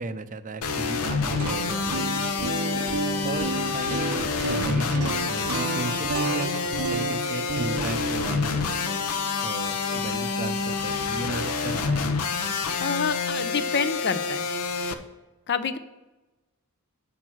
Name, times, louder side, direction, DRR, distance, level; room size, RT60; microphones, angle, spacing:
voice 1, 0.0-2.2 3.2-8.8 9.4-12.0, right 2 dB, 35° right, 12 dB, 0.6 m, -35 dB
sound 1, 0.6-14.9, left 4 dB, 85° left, 0.8 m, -28 dB
sound 2, 1.2-11.2, right 4 dB, 70° right, 0.7 m, -33 dB
voice 2, 12.8-14.4 15.5-15.8, left 6 dB, 50° left, 12 dB, 0.6 m, -27 dB
8.5 x 6.0 x 6.2 m, 1.1 s
head